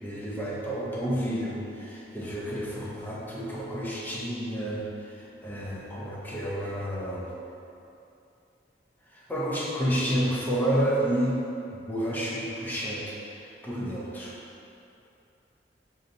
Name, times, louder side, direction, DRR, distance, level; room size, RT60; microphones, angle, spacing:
voice 1, 0.0-7.3 9.1-11.4 11.7-14.4, equal, 10° left, -6 dB, 0.7 m, -30 dB
6.4 x 2.7 x 2.6 m, 2.7 s
head